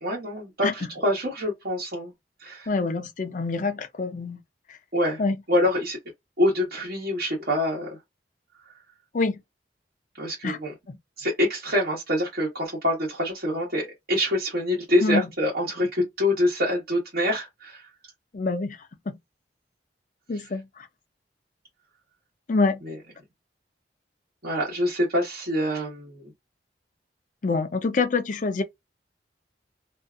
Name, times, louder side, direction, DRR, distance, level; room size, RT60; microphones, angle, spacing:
voice 1, 0.0-2.1 2.4-2.7 4.9-5.2 5.5-6.0 6.4-7.9 10.2-10.7 11.2-17.9 22.8-23.0 24.4-26.3, left 1 dB, 55° right, 1.1 m, -25 dB
voice 2, 2.7-4.4 4.7-4.8 5.2-5.4 9.1-9.4 10.4-10.6 10.9-11.0 15.0-15.3 18.3-18.8 19.1-19.2 20.3-20.9 22.5-22.8 27.4-28.6, left 3 dB, 45° left, 0.5 m, -26 dB
2.6 x 2.4 x 2.3 m
head